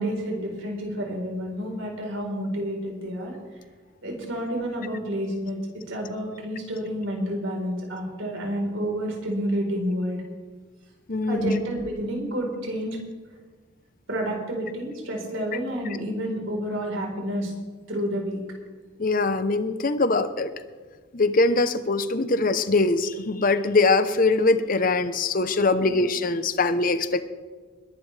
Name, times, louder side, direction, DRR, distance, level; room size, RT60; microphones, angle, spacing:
voice 1, 0.0-3.3 4.0-5.6 5.9-10.2 11.3-13.0 14.1-17.5 17.9-18.4 25.8-26.0, equal, 75° right, 0 dB, 4.4 m, -29 dB
voice 2, 11.1-11.6 19.0-20.5 21.1-27.2, left 3 dB, 40° left, 11 dB, 0.9 m, -22 dB
21.5 x 12.0 x 3.4 m, 1.5 s
head